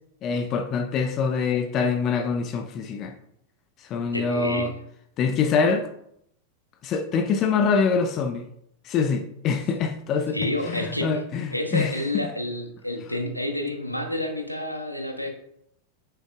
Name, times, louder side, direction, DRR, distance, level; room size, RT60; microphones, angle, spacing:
voice 1, 0.2-3.2 3.8-4.7 5.2-5.9 6.8-8.4 8.8-12.0, left 5 dB, 35° left, 0.6 m, -25 dB
voice 2, 4.1-4.7 10.3-11.1 11.5-15.3, left 1 dB, 90° left, 1.0 m, -29 dB
8.2 x 6.5 x 2.4 m
figure-of-eight pair, 90°, 0 cm